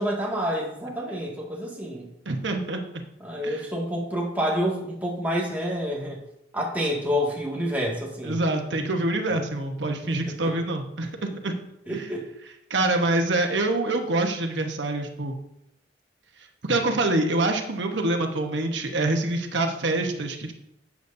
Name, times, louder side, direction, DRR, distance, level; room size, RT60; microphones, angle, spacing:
voice 1, 0.0-2.1 3.2-6.2 6.5-8.4 10.1-10.5 11.9-12.3, equal, 10° right, -3 dB, 1.9 m, -28 dB
voice 2, 2.3-3.0 3.4-3.6 8.2-11.6 11.9-12.1 12.7-15.3 16.6-20.5, right 2 dB, 85° right, 4 dB, 1.1 m, -26 dB
12.0 x 8.1 x 2.7 m, 0.80 s
head